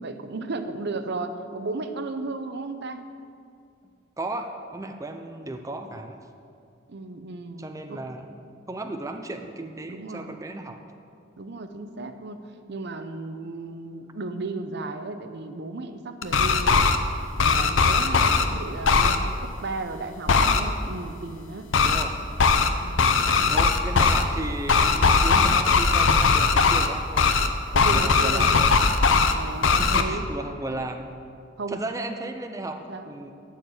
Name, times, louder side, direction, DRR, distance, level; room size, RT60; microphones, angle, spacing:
voice 1, 0.0-3.1 6.9-8.0 9.9-10.4 11.4-17.0 17.4-21.7 22.8-23.6 27.7-28.7 29.3-30.3 31.6-31.8 32.9-33.1, right 3 dB, 60° right, 8 dB, 0.7 m, -35 dB
voice 2, 4.2-6.2 7.6-8.3 8.7-10.8 18.2-18.6 21.8-22.2 23.5-27.3 27.6-28.9 29.6-31.1 31.7-32.8 33.1-33.3, right 2 dB, 15° right, 5 dB, 0.5 m, -35 dB
sound 1, 16.2-17.0 17.4-18.4 18.8-19.2 20.3-20.6 21.7-22.0 22.4-22.7 23.0-24.2 24.7-26.9 27.2-27.5 27.7-29.3 29.6-30.0, left 4 dB, 75° left, 0.6 m, -19 dB
12.0 x 4.6 x 8.1 m, 2.4 s
head